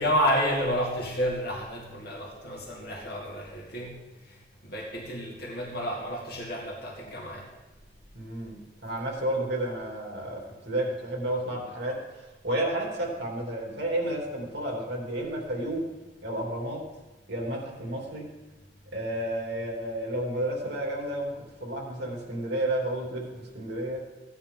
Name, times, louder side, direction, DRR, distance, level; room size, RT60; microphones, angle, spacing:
voice 1, 0.0-4.0 4.6-7.5, equal, 60° left, -3 dB, 2.3 m, -30 dB
voice 2, 8.1-15.9 16.2-16.9 17.3-18.3 18.9-24.0, right 1 dB, 65° right, -1 dB, 3.1 m, -31 dB
16.5 x 9.9 x 3.8 m, 1.1 s
head